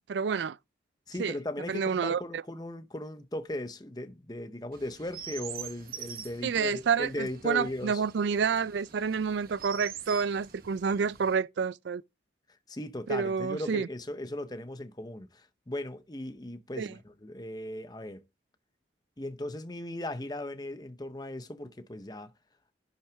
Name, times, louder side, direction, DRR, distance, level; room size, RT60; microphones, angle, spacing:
voice 1, 0.1-0.6 1.2-1.3 1.7-2.4 6.4-12.0 13.1-13.9 16.8-16.9, right 6 dB, 80° right, 0.4 m, -29 dB
voice 2, 1.1-8.0 12.7-18.2 19.2-22.3, left 1 dB, 20° left, 0.8 m, -37 dB
Chirp tweet, 4.7-11.4, right 8 dB, 55° right, 1.1 m, -45 dB
11.0 x 5.8 x 3.5 m
head